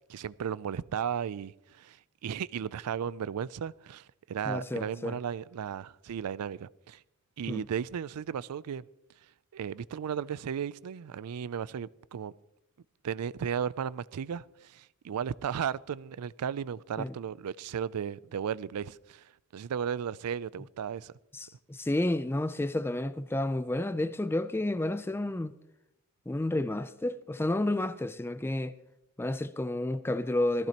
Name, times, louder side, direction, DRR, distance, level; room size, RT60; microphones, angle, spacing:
voice 1, 0.1-7.0 7.4-8.9 9.5-12.3 13.0-19.2 19.5-21.1, right 8 dB, 90° right, 0.4 m, -35 dB
voice 2, 4.4-5.2 7.5-7.6 17.0-17.1 21.3-25.5 26.3-28.7 29.2-30.7, left 1 dB, 10° left, 0.4 m, -31 dB
18.5 x 14.5 x 2.9 m
head